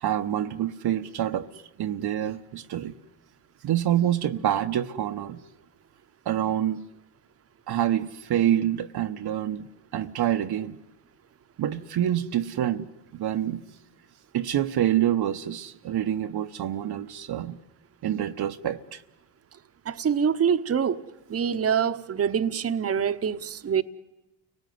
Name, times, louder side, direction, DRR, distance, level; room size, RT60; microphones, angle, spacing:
voice 1, 0.0-1.5 1.8-2.9 3.6-5.4 6.3-6.8 7.7-10.8 11.6-12.9 13.1-13.6 14.3-17.6 18.0-19.0, right 11 dB, 50° right, 1.0 m, -27 dB
voice 2, 19.9-21.0 21.3-23.8, right 7 dB, 30° right, 1.1 m, -25 dB
29.5 x 19.0 x 9.5 m
supercardioid pair, 90°, 49 cm